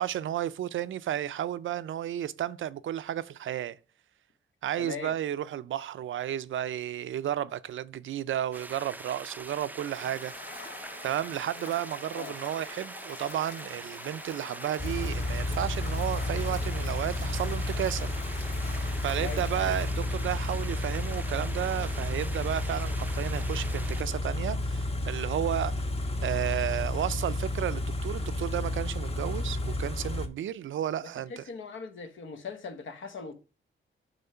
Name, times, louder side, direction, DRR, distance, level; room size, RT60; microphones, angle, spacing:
voice 1, 0.0-3.8 4.6-10.3 11.0-18.1 18.5-25.7 26.2-31.5, right 11 dB, 80° right, 0.4 m, -32 dB
voice 2, 4.8-5.1 12.1-12.3 19.2-19.7 31.3-33.3, left 5 dB, 75° left, 1.0 m, -40 dB
sound 1, 8.5-24.0, right 2 dB, 10° right, 0.4 m, -44 dB
sound 2, 9.9-19.9, left 3 dB, 55° left, 2.9 m, -46 dB
Car / Idling, 14.8-30.3, left 1 dB, 30° left, 1.0 m, -31 dB
7.9 x 3.1 x 5.6 m
wide cardioid pair, 115°, 20 cm